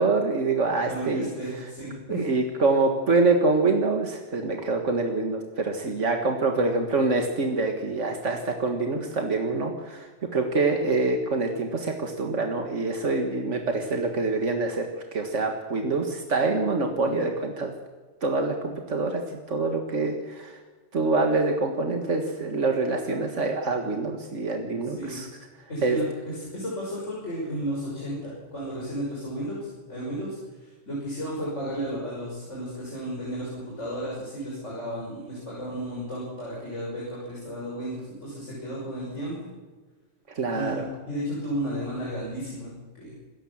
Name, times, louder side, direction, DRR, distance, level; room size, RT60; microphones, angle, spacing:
voice 1, 0.0-1.3 2.1-14.9 15.1-17.7 18.2-19.2 19.5-20.6 20.9-25.3 25.8-26.0 40.4-40.8, right 3 dB, 85° right, 4 dB, 2.1 m, -25 dB
voice 2, 0.9-2.2 24.8-25.2 25.7-39.5 40.5-43.1, equal, 85° left, -5 dB, 6.5 m, -33 dB
26.5 x 14.0 x 7.3 m, 1.3 s
omnidirectional pair, 1.2 m